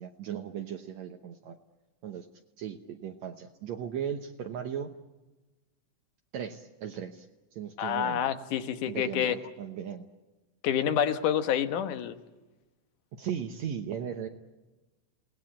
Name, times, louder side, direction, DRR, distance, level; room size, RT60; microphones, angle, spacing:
voice 1, 0.0-1.6 2.0-2.3 2.6-4.9 6.3-7.3 7.5-8.2 8.9-10.0 13.1-14.3, right 8 dB, 70° right, 4 dB, 2.2 m, -37 dB
voice 2, 7.8-9.4 10.6-12.2, left 9 dB, 85° left, 9 dB, 2.8 m, -28 dB
28.5 x 19.0 x 8.7 m, 1.1 s
omnidirectional pair, 3.5 m